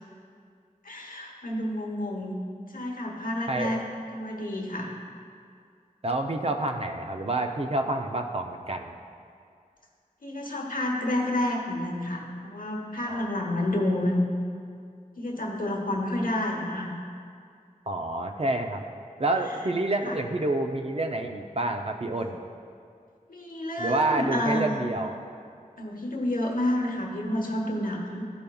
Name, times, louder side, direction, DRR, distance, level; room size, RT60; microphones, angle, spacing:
voice 1, 0.8-2.4 2.7-3.8 4.1-4.9 10.2-14.2 15.2-16.9 20.0-20.2 23.3-24.7 25.8-28.2, left 1 dB, 90° left, -1 dB, 1.0 m, -29 dB
voice 2, 3.5-3.8 6.0-8.9 13.0-13.2 17.9-18.8 19.2-22.4 23.8-25.2, right 2 dB, 45° right, 4 dB, 0.5 m, -28 dB
13.0 x 5.2 x 2.3 m, 2.3 s
wide cardioid pair, 50°, 14 cm